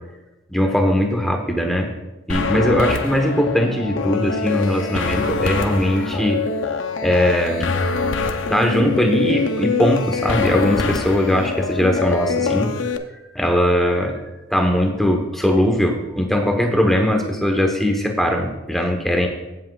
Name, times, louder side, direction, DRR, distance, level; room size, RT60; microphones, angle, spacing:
voice 1, 0.5-1.9 2.3-6.4 7.0-7.7 8.5-12.9 13.3-14.2 14.5-19.3, left 1 dB, ahead, 3 dB, 1.0 m, -20 dB
sound 1, 2.3-13.0, left 4 dB, 80° left, 0.7 m, -24 dB
15.5 x 7.6 x 2.4 m, 1.0 s
head